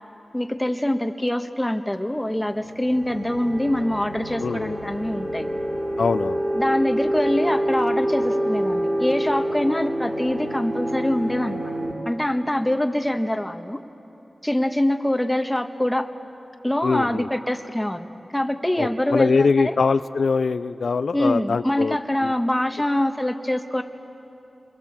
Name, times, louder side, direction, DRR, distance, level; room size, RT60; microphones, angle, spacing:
voice 1, 0.3-5.5 6.5-11.7 12.0-13.8 14.4-16.1 16.6-19.8 21.1-23.8, left 1 dB, 10° left, 6 dB, 1.5 m, -24 dB
sound 1, 2.3-11.9, equal, 20° right, 6.2 m, -27 dB
voice 2, 4.4-4.8 6.0-6.4 16.8-17.3 18.8-22.0 22.2-22.3, left 4 dB, 80° left, 12 dB, 0.5 m, -22 dB
28.5 x 22.0 x 7.4 m, 3.0 s
cardioid pair, 60°, 0 cm